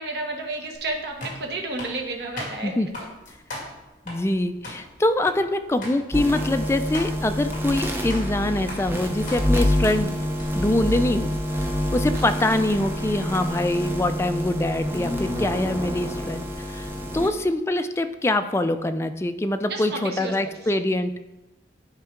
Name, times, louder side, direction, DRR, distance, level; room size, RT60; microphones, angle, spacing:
voice 1, 0.0-2.7 12.2-12.3 17.2-17.4 19.7-20.7, right 2 dB, 65° right, 2 dB, 1.0 m, -32 dB
sound 1, 0.7-10.5, left 1 dB, 45° left, 2.2 m, -40 dB
voice 2, 2.6-2.9 4.1-10.2 10.5-11.3 11.6-21.1, left 1 dB, 15° left, 8 dB, 0.3 m, -24 dB
sound 2, 6.1-17.3, equal, 15° right, 0.7 m, -27 dB
10.5 x 4.4 x 3.7 m, 1.0 s
head